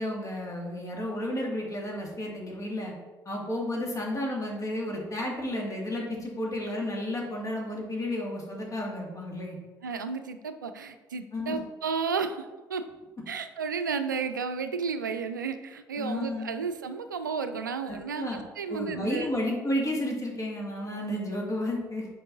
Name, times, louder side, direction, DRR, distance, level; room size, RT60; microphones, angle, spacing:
voice 1, 0.0-2.9 3.3-9.6 11.3-11.6 16.0-16.6 17.9-18.4 18.7-22.1, left 1 dB, 35° left, -1 dB, 2.1 m, -32 dB
voice 2, 9.8-12.8 13.3-19.3, right 5 dB, 85° right, 9 dB, 0.4 m, -33 dB
8.7 x 5.3 x 2.6 m, 1.2 s
figure-of-eight pair, 50°, 10 cm